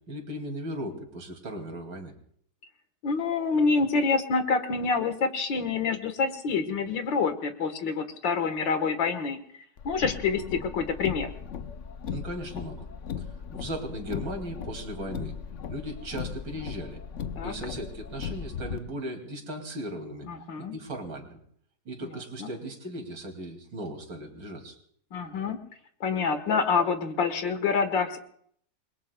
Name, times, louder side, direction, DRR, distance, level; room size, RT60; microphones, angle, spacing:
voice 1, 0.1-2.1 12.1-12.9 13.2-13.3 13.5-15.3 15.7-17.0 17.4-20.3 20.6-21.4 21.8-24.7, right 1 dB, 80° right, 3 dB, 3.3 m, -37 dB
voice 2, 3.0-9.4 9.9-11.3 17.4-17.5 20.3-20.7 22.4-22.5 25.1-25.6 26.0-28.2, left 5 dB, 80° left, 7 dB, 2.2 m, -27 dB
Car, 9.8-18.8, left 7 dB, 55° left, 0.8 m, -38 dB
28.0 x 21.5 x 2.3 m, 0.64 s
omnidirectional pair, 2.0 m